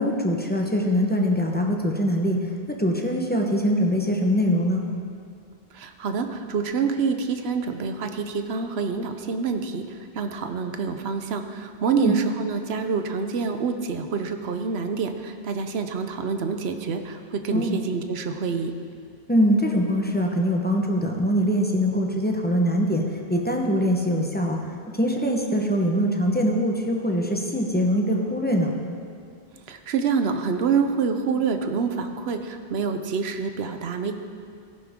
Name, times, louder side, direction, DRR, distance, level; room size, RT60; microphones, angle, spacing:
voice 1, 0.0-2.4 2.8-4.8 11.9-12.1 17.5-17.8 19.3-23.0 23.3-24.6 24.9-28.7, equal, 10° left, 0 dB, 1.0 m, -23 dB
voice 2, 5.7-18.7 29.7-34.1, right 5 dB, 75° right, 7 dB, 1.0 m, -27 dB
15.0 x 10.5 x 3.7 m, 2.3 s
omnidirectional pair, 1.1 m